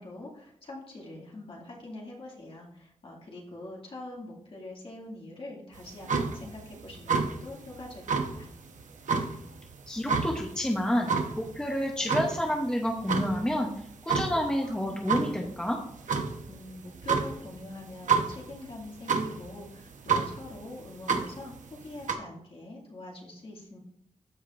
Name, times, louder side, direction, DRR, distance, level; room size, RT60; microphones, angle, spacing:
voice 1, 0.0-8.5 16.5-21.5 21.8-23.8, left 2 dB, 45° left, -2 dB, 2.2 m, -44 dB
sound 1, 5.7-22.1, right 5 dB, 80° right, 0.9 m, -32 dB
voice 2, 9.9-11.1 11.4-13.7 14.0-15.8, equal, 5° left, 0 dB, 0.7 m, -29 dB
14.0 x 5.0 x 2.5 m, 0.72 s
wide cardioid pair, 180°, 13 cm